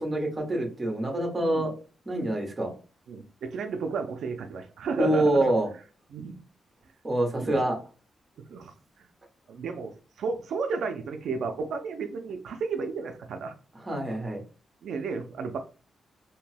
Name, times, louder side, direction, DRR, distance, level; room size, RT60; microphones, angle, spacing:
voice 1, 0.0-1.7 2.1-2.7 5.0-5.7 7.0-7.8 13.9-14.4, right 1 dB, 20° right, 1 dB, 0.9 m, -26 dB
voice 2, 3.1-5.5 6.1-6.4 7.3-7.6 8.4-9.1 9.5-13.5 14.8-15.6, right 5 dB, 80° right, 5 dB, 0.4 m, -33 dB
2.7 x 2.2 x 3.3 m, 0.35 s
wide cardioid pair, 155°, 0 cm